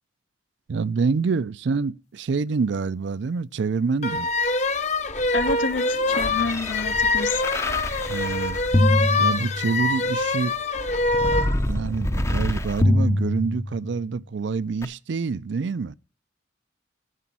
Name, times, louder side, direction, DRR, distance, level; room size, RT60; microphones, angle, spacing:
voice 1, 0.7-4.3 8.1-8.6 9.2-10.6 11.2-11.4 11.7-16.0, right 4 dB, 65° right, 0.4 m, -26 dB
sound 1, 4.0-11.5, left 3 dB, 35° left, 0.8 m, -24 dB
sound 2, 5.1-10.0 10.8-14.1 14.8-14.9, left 1 dB, 15° left, 0.5 m, -25 dB
voice 2, 5.3-7.4, left 3 dB, 70° left, 0.7 m, -28 dB
11.0 x 6.9 x 6.0 m
head